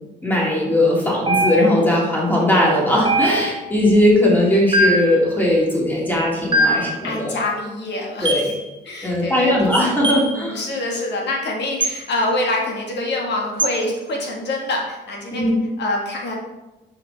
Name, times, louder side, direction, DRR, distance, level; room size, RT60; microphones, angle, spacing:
voice 1, 0.2-7.4 8.2-8.5 9.0-10.6 15.3-15.6, left 1 dB, 10° left, -3 dB, 2.1 m, -18 dB
sound 1, 1.3-1.9 3.1-3.7 4.7-5.2 6.5-6.9 8.3-8.5 10.0-10.3 11.8-12.0 13.6-13.8, right 1 dB, 25° right, 1.0 m, -20 dB
voice 2, 6.6-8.4 8.8-9.7 10.2-16.3, left 2 dB, 60° left, -1 dB, 1.7 m, -26 dB
5.9 x 4.9 x 3.3 m, 1.0 s
cardioid pair, 90°, 20 cm